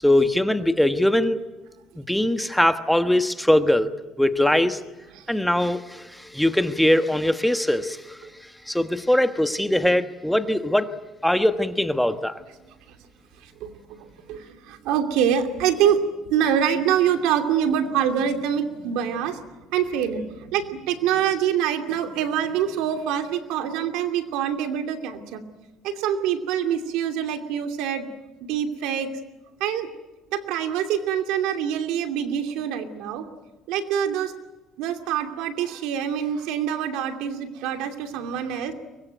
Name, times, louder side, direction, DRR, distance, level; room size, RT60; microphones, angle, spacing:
voice 1, 0.0-1.4 2.0-3.9 4.2-4.8 5.3-10.9 11.2-12.4, left 1 dB, ahead, 9 dB, 1.3 m, -21 dB
voice 2, 12.6-12.9 13.4-19.4 19.7-25.4 25.8-28.1 28.4-29.1 29.6-29.9 30.3-33.3 33.7-34.3 34.8-38.7, right 9 dB, 85° right, 7 dB, 2.6 m, -25 dB
24.0 x 21.5 x 9.3 m, 1.1 s
cardioid pair, 110°, 0 cm